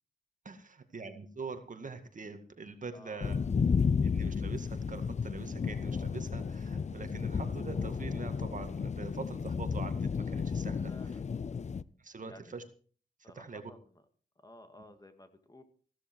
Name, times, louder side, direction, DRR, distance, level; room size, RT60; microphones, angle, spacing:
voice 1, 0.4-3.4 4.0-11.2 12.0-12.6 13.2-13.7, right 4 dB, 45° right, 7 dB, 2.0 m, -44 dB
voice 2, 2.9-3.5 10.9-11.2 12.2-12.5 13.2-13.8 14.4-15.6, left 1 dB, 20° left, 8 dB, 1.9 m, -54 dB
sound 1, 3.2-11.8, left 5 dB, 40° left, 0.6 m, -33 dB
15.5 x 13.0 x 4.7 m, 0.42 s
wide cardioid pair, 100°, 18 cm